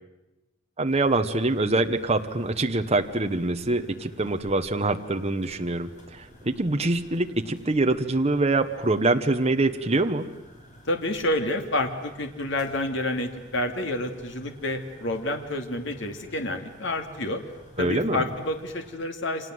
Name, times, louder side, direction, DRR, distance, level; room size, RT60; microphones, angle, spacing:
sound 1, 0.8-19.0, equal, 40° left, 7.0 m, -51 dB
voice 1, 0.8-10.3 17.8-18.3, right 2 dB, 30° right, 6 dB, 1.2 m, -24 dB
voice 2, 10.9-17.4 17.8-19.5, left 1 dB, 65° left, 5 dB, 2.6 m, -29 dB
29.5 x 26.0 x 7.8 m, 1.0 s
head